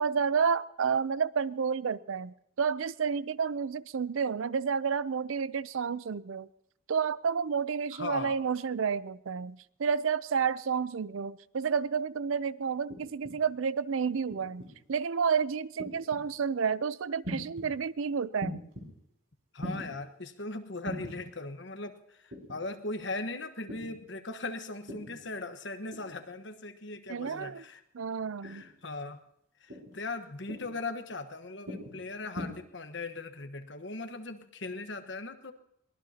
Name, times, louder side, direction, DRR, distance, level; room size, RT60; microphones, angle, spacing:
voice 1, 0.0-6.5 6.9-18.6 27.1-27.6 27.9-28.6, right 6 dB, 80° right, 18 dB, 0.5 m, -30 dB
voice 2, 7.9-8.3 19.5-27.8 28.4-29.2 29.6-35.5, left 3 dB, 60° left, 7 dB, 1.2 m, -39 dB
sound 1, 12.9-13.4 14.3-14.7 15.8-16.2 17.2-17.7 18.4-18.9 19.6-19.9 20.8-21.2 22.3-22.6 23.7-24.0 24.9-25.2 25.9-26.2 27.3-27.6 28.4-28.7 29.7-30.0 30.5-30.8 31.7-32.0 32.4-32.5, equal, 60° right, 5.6 m, -40 dB
23.5 x 19.0 x 2.9 m, 0.75 s
head